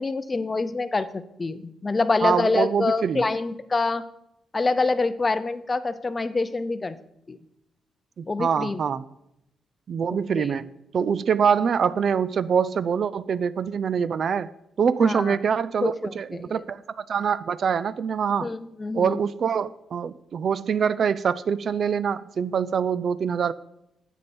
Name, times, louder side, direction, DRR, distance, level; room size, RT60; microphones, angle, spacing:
voice 1, 0.0-4.0 4.5-6.9 7.3-7.4 8.3-8.8 10.1-10.5 15.0-15.4 15.8-16.6 18.4-19.2, left 3 dB, 20° left, 13 dB, 0.5 m, -26 dB
voice 2, 2.2-3.3 8.2-9.0 9.9-14.5 14.8-18.5 18.9-23.5, right 7 dB, 50° right, 17 dB, 0.3 m, -24 dB
9.8 x 8.3 x 4.3 m, 0.82 s
cardioid pair, 145°, 0 cm